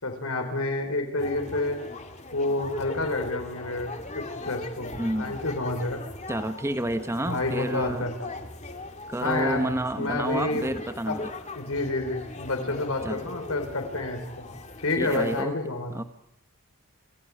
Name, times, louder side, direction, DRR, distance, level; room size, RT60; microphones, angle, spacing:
voice 1, 0.0-1.8 2.3-4.9 5.2-6.0 7.2-8.3 9.2-10.7 11.1-11.2 11.6-14.4 14.8-15.9, left 2 dB, 70° left, 4 dB, 4.3 m, -29 dB
sound 1, 1.2-15.4, left 2 dB, 30° left, 2.3 m, -39 dB
voice 2, 4.9-5.3 6.3-8.1 9.1-11.2 13.0-13.2 15.0-15.6 15.9-16.0, right 1 dB, 10° right, 9 dB, 1.1 m, -29 dB
27.5 x 16.0 x 9.8 m, 0.75 s
head